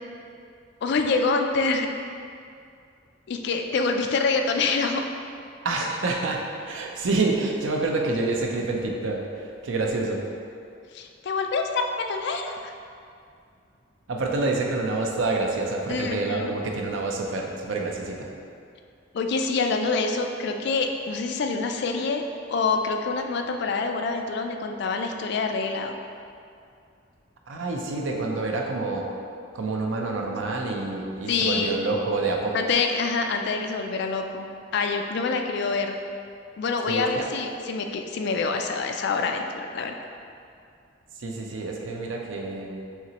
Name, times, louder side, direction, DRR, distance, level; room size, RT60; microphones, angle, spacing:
voice 1, 0.8-1.9 3.3-5.1 10.9-12.7 15.9-16.5 19.1-22.2 22.5-25.9 31.3-31.8 32.5-34.5 34.7-36.0 36.6-39.9, left 4 dB, 60° left, 4 dB, 0.3 m, -26 dB
voice 2, 5.6-10.2 14.1-18.3 27.5-29.1 29.5-32.7 36.9-37.3 41.2-42.8, right 3 dB, 90° right, 1 dB, 0.6 m, -27 dB
5.7 x 3.0 x 2.9 m, 2.4 s
head